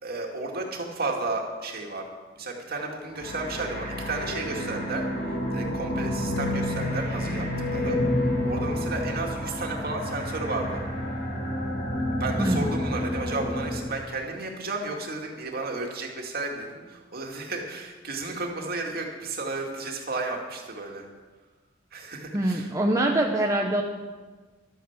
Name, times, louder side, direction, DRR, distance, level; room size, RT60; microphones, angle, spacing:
voice 1, 0.0-2.1 2.4-7.5 7.7-8.0 8.4-10.8 12.2-21.1 21.9-22.7, right 3 dB, 55° right, 1 dB, 2.3 m, -33 dB
sound 1, 3.1-13.9, left 1 dB, 60° left, 3.6 m, -29 dB
voice 2, 12.4-12.7 22.3-23.8, right 1 dB, 15° right, 0 dB, 0.9 m, -24 dB
12.0 x 9.1 x 7.4 m, 1.3 s
head